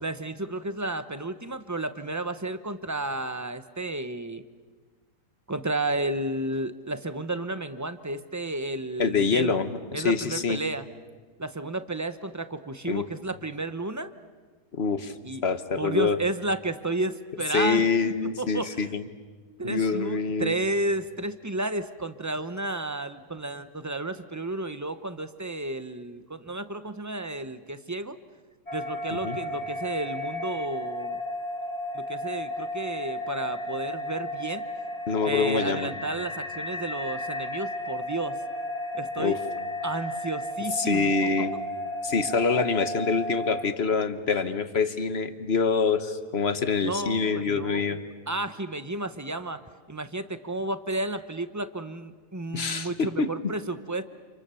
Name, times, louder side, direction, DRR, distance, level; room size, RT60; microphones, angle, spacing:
voice 1, 0.0-4.4 5.5-9.6 9.9-10.9 11.4-14.1 15.2-15.4 15.8-18.9 19.6-28.2 28.7-31.2 31.9-34.6 35.2-38.4 38.9-39.4 39.8-41.1 46.8-47.8 48.3-49.6 49.9-54.0, right 2 dB, 20° right, 11 dB, 0.5 m, -32 dB
voice 2, 9.0-10.6 12.9-13.0 14.7-15.1 15.4-16.2 17.5-19.0 19.6-20.5 29.2-29.4 35.1-35.9 39.2-39.3 40.8-41.5 42.0-48.0 52.5-53.3, left 5 dB, 40° left, 10 dB, 1.4 m, -25 dB
sound 1, 28.7-43.7, left 1 dB, 25° left, 1.5 m, -33 dB
30.0 x 28.0 x 7.0 m, 1.4 s
omnidirectional pair, 1.8 m